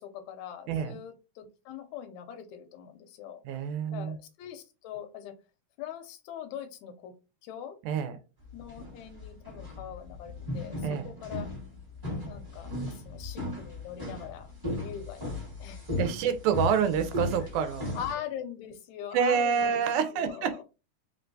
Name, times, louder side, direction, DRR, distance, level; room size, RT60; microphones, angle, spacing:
voice 1, 0.0-3.4 3.9-5.4 5.8-7.2 7.4-7.8 8.5-11.5 12.3-16.1 17.4-19.8 20.1-20.6, left 9 dB, 80° left, 8 dB, 1.8 m, -42 dB
voice 2, 0.7-1.0 3.5-4.2 7.8-8.2 10.8-11.1 16.0-18.0 19.1-20.6, right 7 dB, 85° right, 10 dB, 2.0 m, -27 dB
sound 1, 8.5-18.1, left 1 dB, 15° right, 0.7 m, -36 dB
4.4 x 3.3 x 2.6 m, 0.29 s
omnidirectional pair, 3.5 m